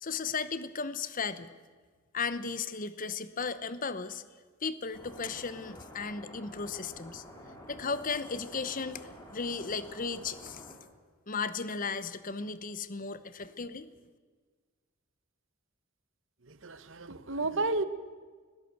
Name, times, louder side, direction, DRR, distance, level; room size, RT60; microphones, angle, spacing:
voice 1, 0.0-1.5 2.1-4.2 4.6-7.2 7.7-10.7 11.3-13.9, left 5 dB, 40° left, 14 dB, 0.9 m, -35 dB
sound 1, 4.9-10.7, equal, 20° left, 3.3 m, -49 dB
voice 2, 16.4-17.8, right 2 dB, 60° right, 13 dB, 1.1 m, -32 dB
19.5 x 17.0 x 8.0 m, 1.5 s
head